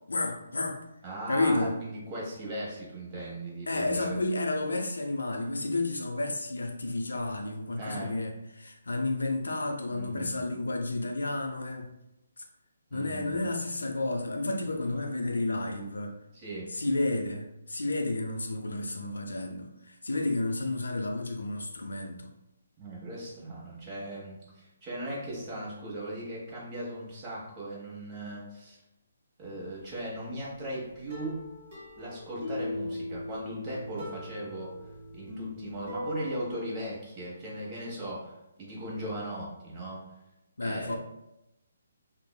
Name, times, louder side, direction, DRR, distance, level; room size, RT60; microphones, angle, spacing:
voice 1, 0.1-0.8 1.3-1.7 3.7-11.9 12.4-12.5 12.9-16.1 16.7-22.3 40.6-40.9, left 2 dB, 75° left, 3 dB, 0.4 m, -31 dB
voice 2, 1.0-4.2 7.8-8.1 9.9-10.4 12.9-13.5 16.3-16.7 22.8-28.8 29.4-31.4 32.0-34.7 35.1-40.0 40.6-41.0, right 1 dB, 25° right, -5 dB, 0.9 m, -38 dB
sound 1, 29.7-30.0 31.1-36.5, left 1 dB, 50° right, 1.0 m, -39 dB
3.0 x 2.0 x 2.2 m, 0.88 s
figure-of-eight pair, 140°, 0 cm